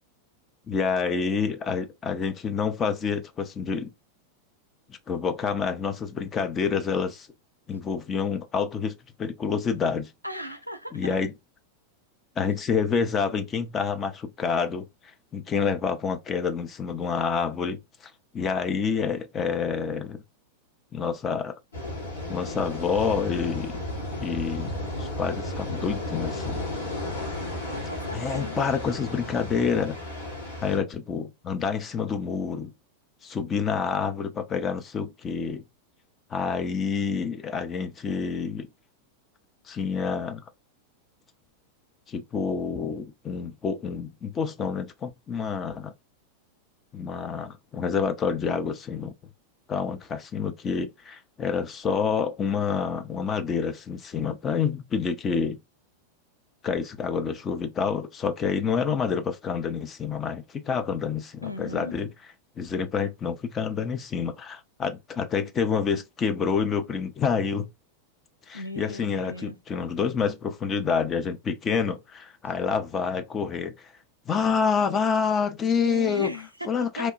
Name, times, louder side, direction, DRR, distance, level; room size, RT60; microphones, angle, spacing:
voice 1, 0.7-3.9 5.1-7.3 7.7-8.9 9.2-10.1 10.9-11.3 12.4-14.9 15.3-20.2 20.9-21.5 22.3-23.8 24.2-24.7 25.0-26.6 28.1-30.0 30.6-32.7 33.2-35.6 36.3-38.7 39.7-40.4 42.1-45.9 46.9-49.1 49.7-55.6 56.6-62.1 62.6-67.7 68.5-73.9 74.3-76.3 76.7-77.1, left 6 dB, 25° left, 0.5 m, -28 dB
voice 2, 10.2-11.2 27.7-28.7 61.4-62.0 68.5-69.6 75.8-77.1, left 1 dB, 90° right, 0.4 m, -36 dB
sound 1, 21.7-30.8, left 1 dB, 70° left, 1.4 m, -33 dB
3.0 x 2.2 x 2.4 m
figure-of-eight pair, 90°, 0 cm